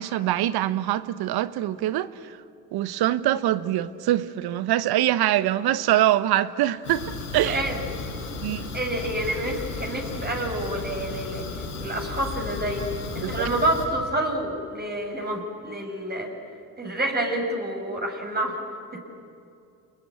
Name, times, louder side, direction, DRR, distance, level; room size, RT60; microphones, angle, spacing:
voice 1, 0.0-2.4 2.7-7.6 8.4-8.7 13.2-13.5, right 13 dB, 55° right, 1.1 m, -24 dB
Fire, 6.8-13.8, left 4 dB, 90° left, 7.1 m, -34 dB
voice 2, 7.4-7.7 8.4-11.4 11.8-12.9 13.1-16.3 16.8-18.6 18.9-19.0, right 1 dB, 20° right, 6.4 m, -28 dB
28.0 x 21.0 x 8.5 m
hypercardioid pair, 60°, 44 cm